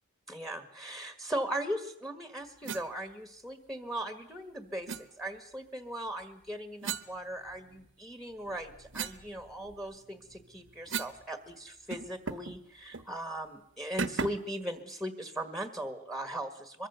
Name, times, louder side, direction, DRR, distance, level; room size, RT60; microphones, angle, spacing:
voice 1, 0.3-16.9, right 1 dB, ahead, 8 dB, 1.6 m, -38 dB
sound 1, 2.6-2.9 4.9-5.0 6.8-7.9 8.3-11.2 11.5-11.6 11.9-12.6 12.9-13.1 14.0-14.5, right 5 dB, 60° right, 1.1 m, -38 dB
23.5 x 23.0 x 7.0 m, 0.72 s
head